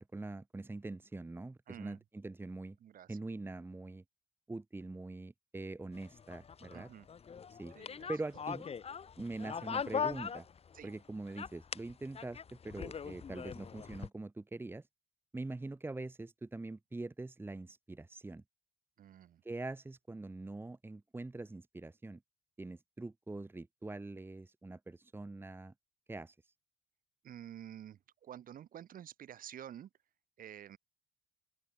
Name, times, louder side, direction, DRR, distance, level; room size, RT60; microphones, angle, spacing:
voice 1, 0.0-2.8 3.1-4.0 4.5-6.9 7.5-7.7 8.1-8.7 9.2-10.4 10.8-14.8 15.3-18.4 19.4-22.2 22.6-25.7 26.1-26.3, right 2 dB, 15° right, 1.8 m, -43 dB
voice 2, 1.7-2.0 2.8-3.2 6.7-7.1 7.7-8.1 10.7-10.9 19.0-19.4 27.2-29.9 30.4-30.8, right 10 dB, 55° right, 6.5 m, -50 dB
sound 1, 5.9-11.0 11.3-14.1, left 6 dB, 35° left, 3.3 m, -41 dB
open air
cardioid pair, 110°, 17 cm